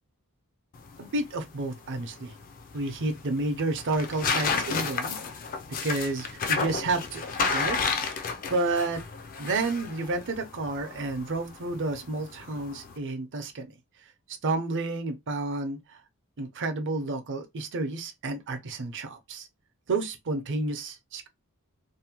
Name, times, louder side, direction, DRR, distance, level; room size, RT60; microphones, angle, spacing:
sound 1, 0.7-13.0, left 5 dB, 40° left, 0.4 m, -32 dB
voice 1, 1.0-2.3 2.7-5.2 5.8-7.3 7.5-7.8 8.5-9.0 9.4-13.7 14.4-16.0 16.4-19.5 19.9-21.3, right 2 dB, 55° right, 0.6 m, -30 dB
2.6 x 2.1 x 2.9 m
head